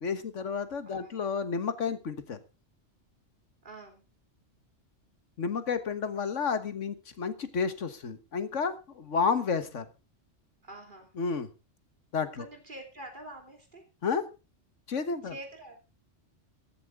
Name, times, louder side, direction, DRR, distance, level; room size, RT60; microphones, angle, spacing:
voice 1, 0.0-2.4 5.4-9.9 11.2-11.5 12.1-12.5 14.0-14.3 14.9-15.4, left 5 dB, 85° left, 11 dB, 1.7 m, -31 dB
voice 2, 0.9-1.2 3.6-4.0 10.6-11.1 12.4-13.8 15.2-15.8, right 1 dB, 40° right, 3 dB, 3.4 m, -46 dB
14.5 x 12.0 x 3.6 m, 0.29 s
omnidirectional pair, 1.2 m